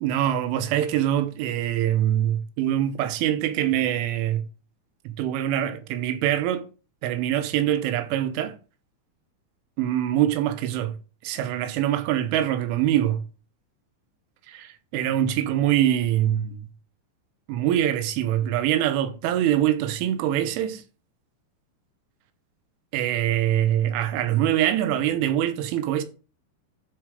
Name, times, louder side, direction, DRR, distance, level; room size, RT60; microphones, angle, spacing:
voice 1, 0.0-4.5 5.1-6.7 7.0-8.6 9.8-11.0 11.2-13.3 14.5-16.6 17.5-20.8 22.9-26.0, right 11 dB, 90° right, 3.5 m, -24 dB
12.5 x 4.5 x 5.0 m
omnidirectional pair, 5.5 m